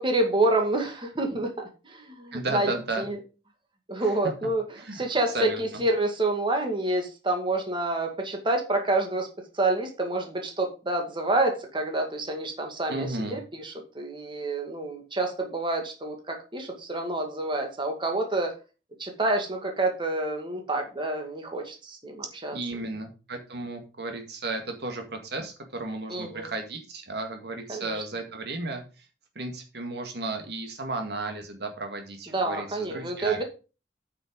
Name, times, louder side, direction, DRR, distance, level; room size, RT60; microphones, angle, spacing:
voice 1, 0.0-2.7 3.0-3.2 3.9-4.6 4.9-9.3 9.5-18.5 19.0-22.6 26.1-26.5 27.7-27.9 32.3-33.4, right 2 dB, 30° right, 3 dB, 2.1 m, -28 dB
voice 2, 2.3-3.1 4.0-4.3 4.8-5.0 5.3-5.8 12.9-13.4 22.5-29.1 29.4-33.4, right 2 dB, 65° right, 4 dB, 2.0 m, -34 dB
9.0 x 5.9 x 5.2 m, 0.32 s
head